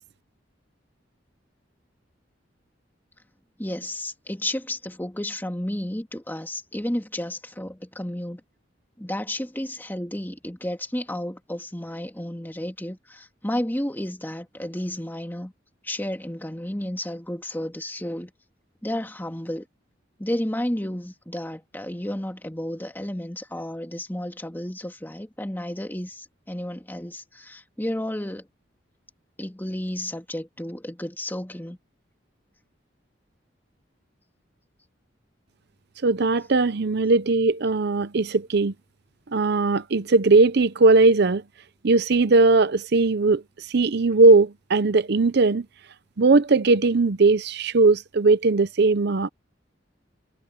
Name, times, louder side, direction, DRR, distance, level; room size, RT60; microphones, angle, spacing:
voice 1, 3.6-8.4 9.0-15.5 15.8-18.3 18.8-19.7 20.2-28.5 29.4-31.8, left 1 dB, 10° left, 2.2 m, -32 dB
voice 2, 36.0-38.7 39.3-41.4 41.8-43.4 43.7-45.7 46.2-49.3, right 3 dB, 60° right, 0.7 m, -19 dB
head